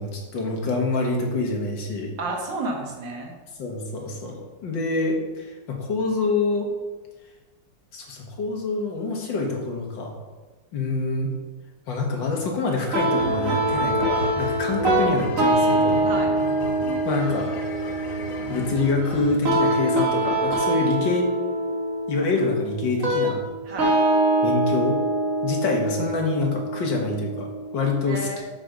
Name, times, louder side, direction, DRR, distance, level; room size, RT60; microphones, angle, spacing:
voice 1, 0.0-2.1 3.6-6.7 7.9-10.1 10.7-11.3 11.9-16.0 17.0-17.5 18.5-21.3 22.1-23.4 24.4-25.0 25.4-28.4, left 3 dB, 75° left, 1 dB, 2.2 m, -26 dB
voice 2, 2.2-3.3 16.0-16.3 23.7-23.9 28.1-28.4, right 2 dB, 75° right, 0 dB, 2.3 m, -31 dB
sound 1, 12.9-27.9, right 1 dB, 45° right, 2.1 m, -24 dB
Synthesised chinese orchestral sound, 13.2-19.4, left 2 dB, 50° left, 1.4 m, -34 dB
7.9 x 5.4 x 6.4 m, 1.2 s
omnidirectional pair, 2.0 m